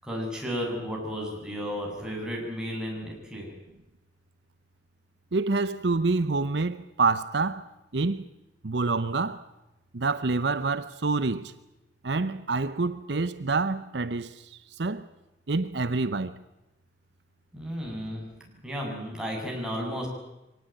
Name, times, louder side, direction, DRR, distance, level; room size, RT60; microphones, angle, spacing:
voice 1, 0.0-3.5 17.5-18.3 18.6-20.1, equal, 5° right, 7.2 m, -33 dB
voice 2, 5.3-7.6 7.9-8.3 8.6-9.4 9.9-11.5 12.0-15.1 15.5-16.4, right 3 dB, 65° right, 0.8 m, -27 dB
24.0 x 18.5 x 9.1 m
head